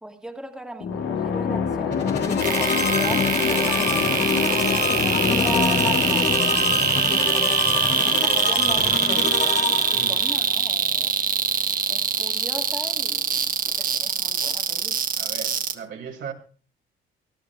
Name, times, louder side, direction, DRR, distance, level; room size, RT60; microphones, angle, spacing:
voice 1, 0.0-4.1 5.2-7.5 7.9-11.1 11.9-15.0, right 1 dB, 5° right, 1.8 m, -37 dB
sound 1, 0.8-8.5, left 6 dB, 75° left, 1.6 m, -26 dB
sound 2, 1.9-10.4, left 5 dB, 55° left, 2.6 m, -27 dB
sound 3, 2.4-15.7, right 7 dB, 45° right, 1.1 m, -23 dB
voice 2, 3.6-3.9 4.3-5.2 9.9-10.5 15.2-16.3, right 6 dB, 65° right, 2.5 m, -39 dB
24.5 x 13.0 x 2.3 m
cardioid pair, 90°, 20 cm